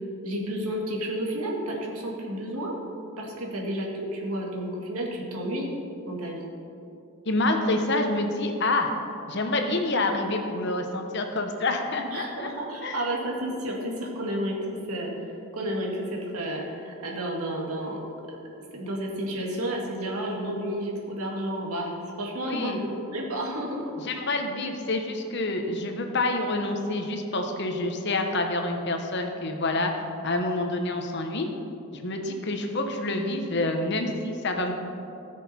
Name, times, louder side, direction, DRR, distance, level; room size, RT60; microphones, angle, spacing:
voice 1, 0.2-2.7 3.2-5.7 6.1-6.4 12.1-15.1 15.5-18.0 18.7-23.9, right 1 dB, 85° right, -1 dB, 2.0 m, -31 dB
voice 2, 7.3-8.9 9.3-12.5 12.8-13.0 22.4-22.8 24.0-29.9 30.2-31.5 31.9-34.9, left 2 dB, 50° left, 4 dB, 1.0 m, -27 dB
17.5 x 6.5 x 4.3 m, 2.8 s
head